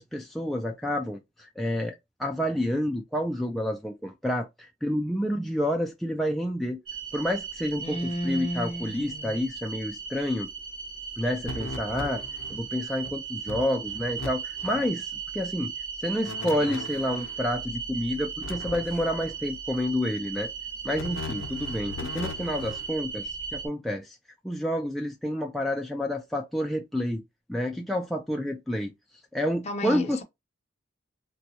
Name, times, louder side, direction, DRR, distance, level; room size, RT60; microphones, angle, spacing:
voice 1, 0.0-6.8 7.1-10.5 11.2-12.2 12.5-15.7 16.0-20.5 20.8-24.2 24.4-27.2 27.5-28.9 29.3-30.2, left 1 dB, ahead, 0.3 m, -29 dB
sound 1, 6.9-23.7, right 6 dB, 80° right, 1.4 m, -37 dB
voice 2, 7.8-9.4 29.6-30.2, equal, 35° left, 0.7 m, -33 dB
sound 2, 11.4-12.7 13.0-13.1 13.5-14.3 14.6-14.9 16.2-17.4 18.4-19.4 20.9-22.9, left 2 dB, 85° left, 0.7 m, -38 dB
3.8 x 2.3 x 2.8 m
head